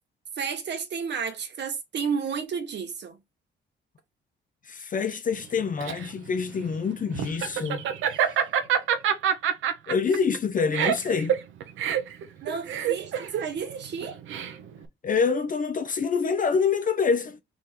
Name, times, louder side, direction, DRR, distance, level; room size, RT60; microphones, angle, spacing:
voice 1, 0.4-3.2 12.4-14.2, right 6 dB, 60° right, 1.5 m, -32 dB
voice 2, 4.6-7.8 8.1-8.4 9.9-11.4 15.0-17.4, left 5 dB, 40° left, 0.7 m, -26 dB
Laughter, 5.4-14.8, right 9 dB, 80° right, 0.9 m, -27 dB
3.7 x 3.1 x 4.2 m
cardioid pair, 90°, 20 cm